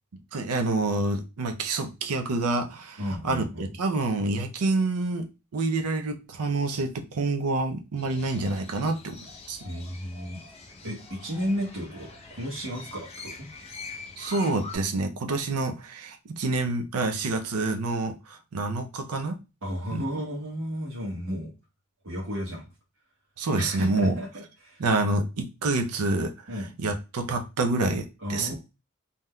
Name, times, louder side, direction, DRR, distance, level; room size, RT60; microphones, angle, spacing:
voice 1, 0.3-9.2 9.5-9.6 14.2-19.4 19.9-20.0 23.4-24.1 24.8-26.3 26.8-28.6, right 2 dB, 80° right, 0.6 m, -27 dB
voice 2, 3.0-3.8 9.6-10.4 10.8-13.5 19.6-21.5 22.0-22.7 23.5-24.8 26.5-26.7 28.2-28.6, equal, 60° right, 1.1 m, -33 dB
Crow, 8.0-14.8, left 4 dB, 30° left, 0.6 m, -44 dB
3.5 x 2.8 x 2.2 m
head